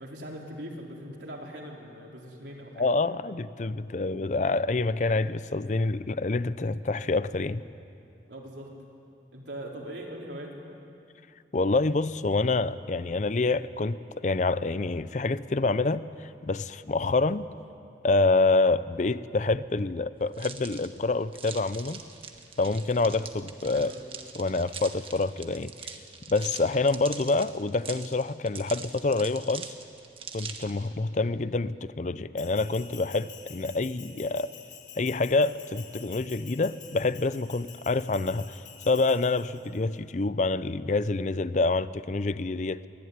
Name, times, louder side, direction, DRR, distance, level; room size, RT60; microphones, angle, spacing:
voice 1, 0.0-2.9 8.3-8.7 9.3-10.8 23.7-24.0, equal, 85° right, -1 dB, 4.1 m, -41 dB
voice 2, 2.8-7.6 11.5-16.0 16.4-17.4 18.0-22.0 22.6-23.9 24.3-25.7 26.3-29.7 30.3-34.5 35.0-38.6 38.9-42.8, left 3 dB, 45° left, 15 dB, 0.5 m, -27 dB
sound 1, 20.3-30.9, right 6 dB, 30° right, 1.4 m, -43 dB
Bell, 32.4-39.8, left 8 dB, 90° left, 3.4 m, -48 dB
23.0 x 17.0 x 9.6 m, 2.6 s
head